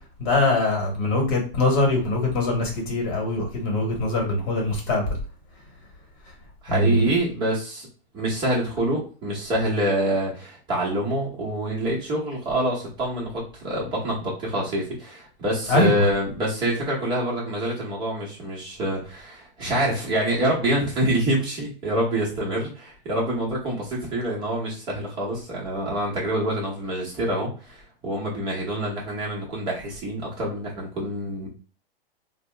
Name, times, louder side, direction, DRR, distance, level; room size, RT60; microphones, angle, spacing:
voice 1, 0.2-5.1 6.7-7.1 15.7-16.1, left 2 dB, 35° left, 0 dB, 1.2 m, -22 dB
voice 2, 6.6-7.9 8.1-31.5, right 1 dB, 15° right, -4 dB, 0.8 m, -26 dB
2.7 x 2.1 x 3.3 m, 0.36 s
hypercardioid pair, 160°, 30 cm